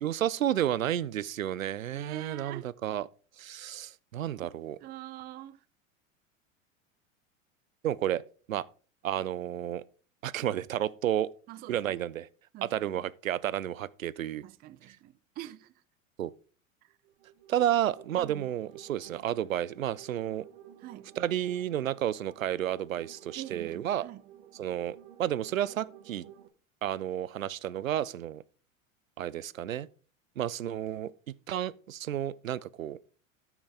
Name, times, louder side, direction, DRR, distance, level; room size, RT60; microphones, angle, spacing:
voice 1, 0.0-3.1 3.4-4.8 7.8-8.2 8.5-8.7 9.0-9.8 10.2-11.3 11.7-12.3 12.6-14.4 16.2-16.3 17.5-20.5 21.2-24.1 24.5-26.3 26.8-28.4 29.2-29.9 30.4-33.0, right 11 dB, 80° right, 0.6 m, -31 dB
voice 2, 1.9-2.7 4.3-4.5 4.8-5.6 11.5-12.0 12.5-13.0 14.4-15.7 18.2-18.5 20.8-21.1 23.3-24.2, right 14 dB, 25° right, 0.5 m, -45 dB
sound 1, 17.0-26.5, right 11 dB, 50° right, 1.2 m, -53 dB
13.5 x 5.9 x 3.5 m
figure-of-eight pair, 85°, 40 cm